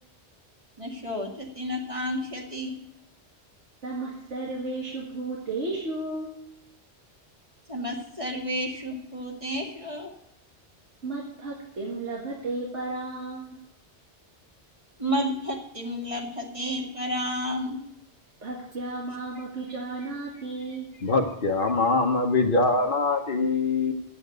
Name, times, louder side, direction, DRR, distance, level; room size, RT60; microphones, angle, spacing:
voice 1, 0.8-2.7 7.7-10.1 15.0-17.8, equal, 30° right, 0 dB, 2.1 m, -31 dB
voice 2, 3.8-6.3 11.0-13.6 18.4-20.9, right 2 dB, 80° right, -3 dB, 2.3 m, -33 dB
voice 3, 21.0-23.9, left 3 dB, 50° left, 1 dB, 1.1 m, -23 dB
8.6 x 7.8 x 7.9 m, 0.83 s
omnidirectional pair, 1.2 m